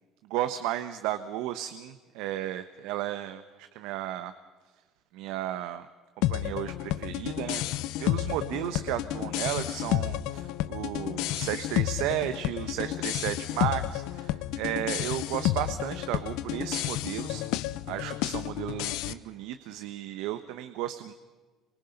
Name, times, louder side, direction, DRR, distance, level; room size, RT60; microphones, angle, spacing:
voice 1, 0.3-3.4 3.7-4.3 5.1-5.9 6.3-7.6 8.0-17.4 17.9-21.1, right 13 dB, 80° right, 10 dB, 1.1 m, -34 dB
sound 1, 6.2-19.1, left 14 dB, 75° left, 0.8 m, -31 dB
27.5 x 24.5 x 5.3 m, 1.4 s
cardioid pair, 155°, 0 cm